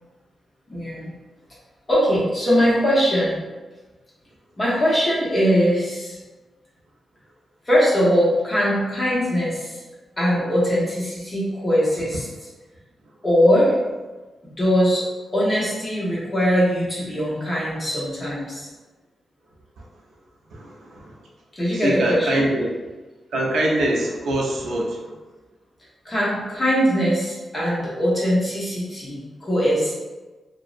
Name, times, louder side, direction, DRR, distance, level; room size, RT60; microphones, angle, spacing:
voice 1, 0.7-1.1 1.9-3.4 4.6-6.2 7.7-9.8 10.2-12.2 13.2-13.8 14.4-15.0 15.3-18.7 21.6-22.5 26.0-29.9, equal, 20° left, -7 dB, 0.8 m, -21 dB
voice 2, 20.5-21.2 21.7-22.7 23.3-25.2, right 1 dB, 80° right, -1 dB, 0.5 m, -24 dB
2.5 x 2.0 x 2.4 m, 1.2 s
wide cardioid pair, 155°, 0 cm